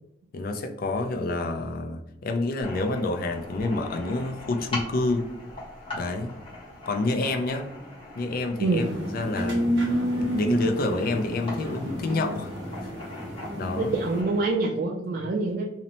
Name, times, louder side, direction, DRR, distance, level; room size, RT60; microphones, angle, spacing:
voice 1, 0.3-5.3 5.9-6.3 6.9-7.7 8.2-8.8 9.1-9.6 10.2-12.5 12.8-12.9 13.5-13.9, left 2 dB, 50° left, 5 dB, 0.4 m, -28 dB
sound 1, 2.6-14.5, left 2 dB, 30° left, 0.9 m, -42 dB
sound 2, 8.8-14.2, equal, 75° right, 0.7 m, -30 dB
voice 2, 13.8-15.7, right 3 dB, 55° right, -1 dB, 0.3 m, -25 dB
2.7 x 2.0 x 2.8 m, 0.85 s
head